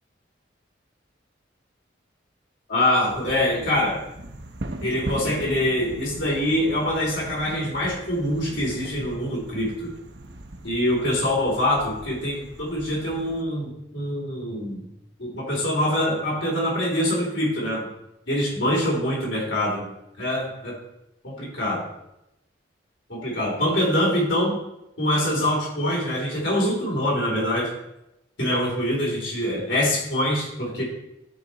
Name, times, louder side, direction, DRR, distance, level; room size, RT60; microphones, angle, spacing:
voice 1, 2.7-4.0 4.8-9.9 10.6-14.8 15.2-17.9 18.3-19.8 20.2-20.7 21.2-21.8 23.1-24.5 25.0-27.7 28.4-30.8, left 1 dB, 80° left, -3 dB, 3.0 m, -24 dB
sound 1, 3.0-13.4, right 1 dB, 60° right, 0.8 m, -39 dB
13.0 x 4.8 x 4.1 m, 0.86 s
head